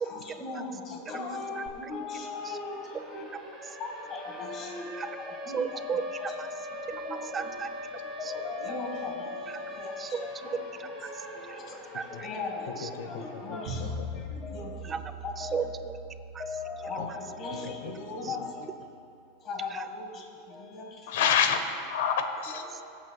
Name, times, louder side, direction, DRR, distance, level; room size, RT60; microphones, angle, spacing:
voice 1, 0.0-3.3 3.8-5.6 6.2-7.5 8.2-10.5 11.3-11.7 12.2-14.9 15.2-15.7 16.4-18.7 19.4-21.2 22.5-22.9, left 3 dB, 30° left, 1 dB, 1.6 m, -39 dB
voice 2, 1.5-1.9 2.4-2.6 4.9-5.1 5.5-6.5 7.2-7.7 8.2-8.3 10.0-10.3 10.8-12.3 12.8-12.9 14.8-15.0 15.4-16.0 16.3-16.4 18.2-18.4 19.7-19.9 22.7-22.8, right 6 dB, 20° right, 9 dB, 0.4 m, -36 dB
Siren, 1.7-1.8 2.1-14.1, left 2 dB, ahead, 2.2 m, -41 dB
voice 3, 12.8-13.2 14.1-14.2 17.0-17.1 17.6-17.9 18.2-18.3 21.1-22.6, left 7 dB, 75° left, 8 dB, 0.9 m, -28 dB
sound 1, 13.7-18.7, equal, 75° right, 2.0 m, -41 dB
21.5 x 8.1 x 2.3 m, 2.6 s
supercardioid pair, 150°, 0 cm